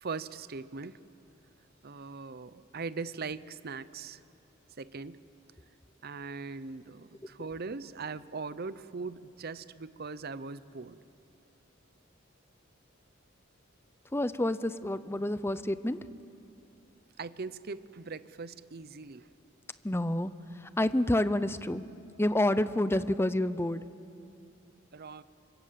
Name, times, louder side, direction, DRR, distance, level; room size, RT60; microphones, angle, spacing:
voice 1, 0.0-1.0 1.8-4.2 4.8-5.2 6.0-11.0 17.2-19.3 24.9-25.2, right 4 dB, 50° right, 15 dB, 0.7 m, -40 dB
voice 2, 14.1-16.0 19.8-20.3 20.6-21.9 22.2-23.8, left 1 dB, 10° left, 13 dB, 0.6 m, -28 dB
28.0 x 25.0 x 7.6 m, 2.6 s
head